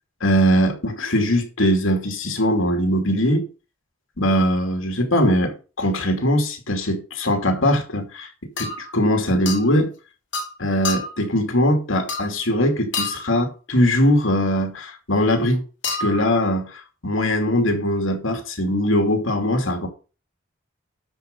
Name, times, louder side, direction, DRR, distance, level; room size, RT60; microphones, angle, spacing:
voice 1, 0.2-3.5 4.2-8.3 8.6-9.9 10.6-15.6 15.9-19.9, equal, 80° left, 2.6 m, -21 dB
sound 1, 7.2-7.4 8.6-8.9 9.5-9.7 10.3-10.5 10.8-11.2 12.1-12.4 12.9-13.4 15.8-16.3, left 3 dB, 60° left, 3.0 m, -28 dB
12.5 x 5.0 x 6.6 m
head